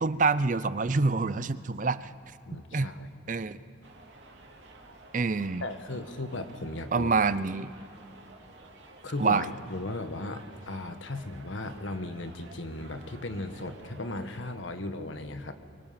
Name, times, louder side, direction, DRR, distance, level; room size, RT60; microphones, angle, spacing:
voice 1, 0.0-2.1 2.7-2.9 3.3-3.6 5.1-5.6 6.9-7.7 9.2-9.5, right 4 dB, 40° right, 15 dB, 0.5 m, -26 dB
voice 2, 2.4-3.1 5.6-7.1 9.0-15.5, left 2 dB, 80° left, 8 dB, 1.4 m, -36 dB
sound 1, 3.8-14.5, right 2 dB, 70° right, 2.8 m, -52 dB
23.5 x 23.5 x 5.9 m, 2.4 s
head